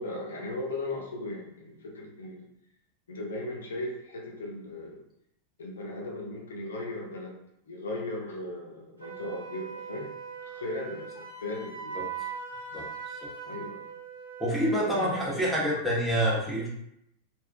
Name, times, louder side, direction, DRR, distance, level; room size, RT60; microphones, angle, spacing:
voice 1, 0.0-2.5 3.1-5.0 5.6-7.4 7.7-10.1 10.4-12.0 12.7-12.9 13.4-13.9 14.8-15.4, left 2 dB, 65° left, 0 dB, 0.7 m, -37 dB
Wind instrument woodwind instrument, 9.0-15.3, right 6 dB, 75° right, 0.7 m, -40 dB
voice 2, 14.4-16.7, equal, ahead, -7 dB, 1.0 m, -27 dB
3.3 x 2.5 x 2.3 m, 0.78 s
figure-of-eight pair, 90°, 0 cm